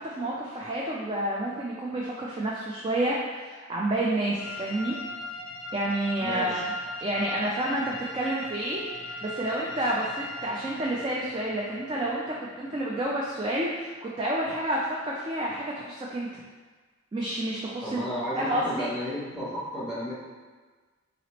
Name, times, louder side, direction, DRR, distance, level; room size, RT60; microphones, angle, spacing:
voice 1, 0.0-5.0 5.7-6.7 7.0-16.3 17.1-18.0 18.3-18.9, right 1 dB, 25° right, -4 dB, 0.3 m, -29 dB
sound 1, 4.4-15.9, left 2 dB, 80° left, 0.5 m, -40 dB
voice 2, 6.2-6.6 17.8-20.1, equal, ahead, -8 dB, 0.8 m, -33 dB
4.0 x 2.9 x 2.9 m, 1.4 s
head